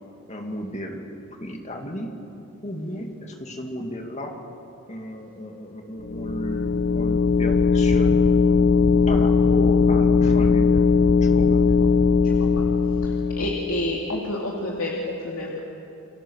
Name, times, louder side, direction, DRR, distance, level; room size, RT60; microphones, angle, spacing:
voice 1, 0.3-2.2 2.6-4.4 4.9-8.2 9.1-10.9 11.2-11.6, equal, 30° left, 2 dB, 2.5 m, -34 dB
sound 1, 6.0-13.8, left 5 dB, 55° left, 0.9 m, -19 dB
voice 2, 13.4-15.6, left 1 dB, 75° left, -2 dB, 2.6 m, -29 dB
29.5 x 23.5 x 6.6 m, 2.9 s
head